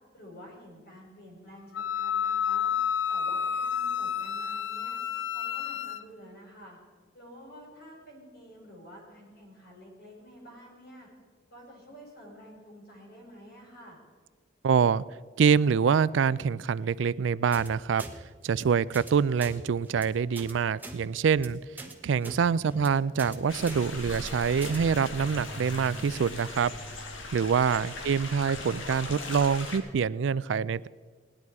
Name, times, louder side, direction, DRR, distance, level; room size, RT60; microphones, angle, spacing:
voice 1, 0.1-2.7 3.1-5.0 5.3-6.8 7.1-11.1 11.5-14.0 28.0-28.2, equal, 55° left, -2 dB, 5.0 m, -50 dB
Wind instrument woodwind instrument, 1.7-6.0, left 8 dB, 75° left, 0.5 m, -30 dB
voice 2, 14.6-15.0 15.4-18.0 18.4-21.6 22.0-26.7 27.3-30.9, right 6 dB, 70° right, 20 dB, 0.4 m, -25 dB
sound 1, 17.5-17.7 18.0-18.1 18.4-18.6 18.9-19.1 19.4-19.5 19.9-20.0 20.4-20.5 20.8-21.0 21.3-21.5 21.8-21.9 22.2-22.4 22.7-22.9 23.2-23.4 23.7-23.8 24.1-24.3 24.6-24.8, right 2 dB, 10° right, 1.1 m, -42 dB
sound 2, 23.5-29.8, left 2 dB, 90° left, 1.6 m, -39 dB
18.0 x 11.0 x 4.7 m, 1.5 s
head